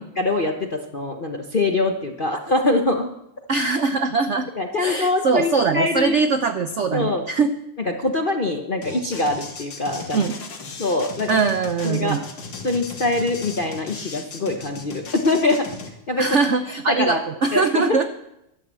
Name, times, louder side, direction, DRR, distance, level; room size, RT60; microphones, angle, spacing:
voice 1, 0.0-3.1 4.6-6.2 6.9-7.3 7.8-10.2 10.8-11.3 11.8-12.2 12.6-15.7 16.1-16.3 16.9-17.2 17.5-18.0, left 2 dB, 45° left, 4 dB, 0.6 m, -23 dB
voice 2, 3.5-4.5 4.8-7.5 10.1-10.3 11.3-12.2 16.2-18.0, right 4 dB, 75° right, 9 dB, 0.6 m, -21 dB
sound 1, 8.8-15.9, left 4 dB, 65° left, 2.4 m, -37 dB
12.0 x 11.5 x 7.5 m, 0.84 s
omnidirectional pair, 2.2 m